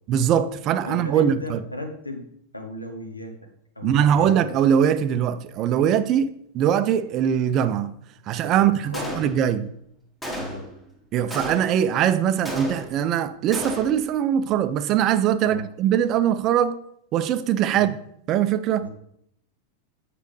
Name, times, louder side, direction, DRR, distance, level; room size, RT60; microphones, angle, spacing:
voice 1, 0.1-1.6 3.8-8.0 8.3-9.7 11.1-16.8 17.1-18.0 18.3-18.9, right 9 dB, 35° right, 0.4 m, -22 dB
voice 2, 0.8-2.3 2.5-3.3 3.8-4.3 8.5-9.2 10.3-10.7 15.4-15.6 17.7-17.9 18.8-18.9, left 1 dB, 85° left, 0.9 m, -35 dB
Gunshot gunfire, 8.9-9.6 10.2-10.8 11.3-11.9 12.4-13.1 13.5-14.1, equal, 5° left, 1.2 m, -33 dB
8.2 x 5.0 x 3.2 m
figure-of-eight pair, 90°, 0 cm